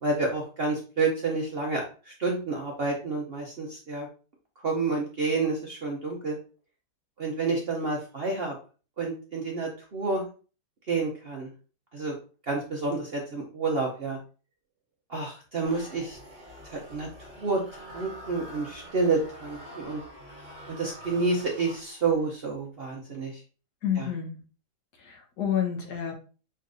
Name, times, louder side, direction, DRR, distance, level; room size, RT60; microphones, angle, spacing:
voice 1, 0.0-4.1 4.6-6.4 7.2-8.5 9.0-10.2 10.9-11.5 11.9-12.1 12.5-14.2 15.1-16.2 16.6-20.0 20.7-23.3 24.0-24.1, right 3 dB, 50° right, -1 dB, 0.7 m, -29 dB
sound 1, 15.6-22.3, equal, 30° right, 1.3 m, -46 dB
voice 2, 23.8-24.4 25.0-26.1, left 9 dB, 75° left, 2 dB, 1.5 m, -29 dB
5.4 x 3.1 x 2.6 m, 0.37 s
omnidirectional pair, 1.8 m